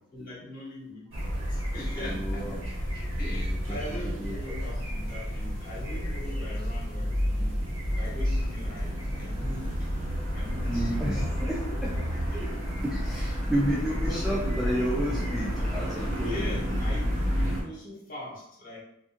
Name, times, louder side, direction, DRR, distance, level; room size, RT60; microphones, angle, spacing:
voice 1, 0.1-2.7 3.2-7.6 7.9-9.7 10.3-11.3 12.3-12.8 13.6-14.2 16.2-18.8, left 1 dB, 40° left, -6 dB, 1.0 m, -41 dB
sound 1, 1.1-17.6, equal, 90° right, 1.0 m, -30 dB
voice 2, 2.0-2.6 3.3-4.6 10.7-11.9 12.8-16.4, equal, ahead, -6 dB, 0.3 m, -32 dB
2.7 x 2.4 x 2.5 m, 0.80 s
head